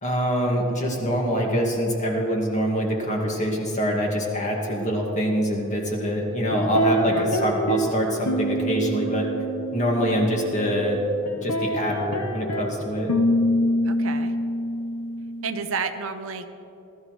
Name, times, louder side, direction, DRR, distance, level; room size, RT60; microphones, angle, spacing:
voice 1, 0.0-9.3 9.7-11.0 11.4-13.1, equal, 35° left, -1 dB, 2.1 m, -24 dB
sound 1, 6.5-7.9 8.3-11.0 11.3-15.6, equal, 90° left, 1.0 m, -26 dB
voice 2, 13.8-14.3 15.4-16.5, right 5 dB, 65° right, 8 dB, 0.7 m, -31 dB
20.0 x 13.5 x 3.2 m, 2.9 s
head